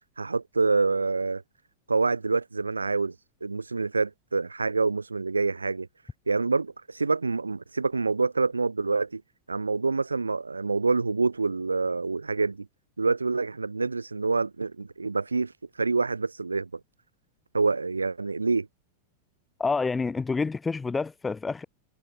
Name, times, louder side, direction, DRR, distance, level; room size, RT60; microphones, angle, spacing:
voice 1, 0.2-1.4 1.9-3.1 3.4-5.9 6.3-9.2 9.5-12.7 13.0-15.5 15.8-16.7 17.5-18.7, right 4 dB, 80° right, 2.5 m, -26 dB
voice 2, 19.6-21.7, left 4 dB, 15° left, 1.0 m, -28 dB
figure-of-eight pair, 90°, 0 cm